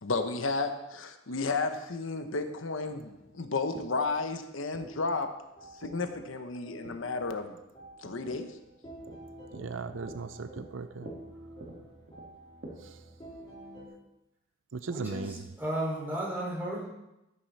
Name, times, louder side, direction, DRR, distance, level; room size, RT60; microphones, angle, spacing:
voice 1, 0.0-5.3 5.8-7.6 8.0-8.5, left 3 dB, 85° left, 7 dB, 1.0 m, -32 dB
sound 1, 2.1-13.9, right 1 dB, 25° left, 4.0 m, -51 dB
sound 2, 3.1-12.7, right 1 dB, 55° right, 2.4 m, -51 dB
voice 2, 9.5-11.1 12.8-13.0 14.7-15.3, right 4 dB, 75° right, 11 dB, 0.5 m, -37 dB
voice 3, 14.9-16.9, right 1 dB, 10° right, -6 dB, 5.2 m, -34 dB
13.5 x 9.2 x 4.2 m, 0.91 s
head